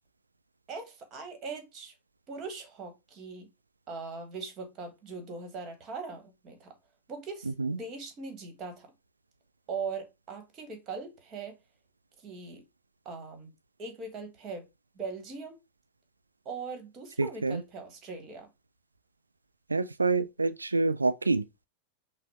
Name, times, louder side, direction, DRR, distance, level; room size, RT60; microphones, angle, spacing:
voice 1, 0.7-1.9 2.3-3.5 3.9-6.7 7.1-8.9 9.7-11.6 12.2-12.6 13.0-13.5 13.8-14.7 14.9-15.6 16.4-18.5, right 4 dB, 30° right, 1.3 m, -40 dB
voice 2, 17.2-17.6 19.7-21.4, right 3 dB, 80° right, 0.3 m, -27 dB
5.7 x 2.0 x 4.2 m
figure-of-eight pair, 90°, 0 cm